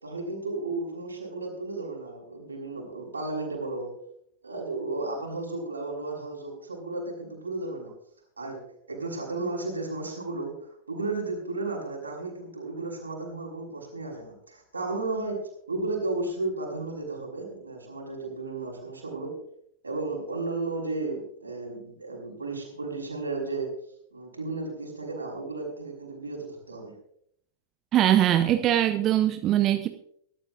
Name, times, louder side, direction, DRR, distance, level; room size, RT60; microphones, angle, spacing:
voice 1, 0.0-3.9 4.4-7.9 8.4-8.6 8.9-15.4 15.7-19.3 19.8-23.7 24.1-26.9, right 3 dB, 80° right, 0 dB, 5.9 m, -34 dB
voice 2, 27.9-29.9, right 12 dB, 35° right, 8 dB, 0.8 m, -22 dB
23.0 x 12.5 x 2.5 m, 0.67 s
figure-of-eight pair, 90°, 0 cm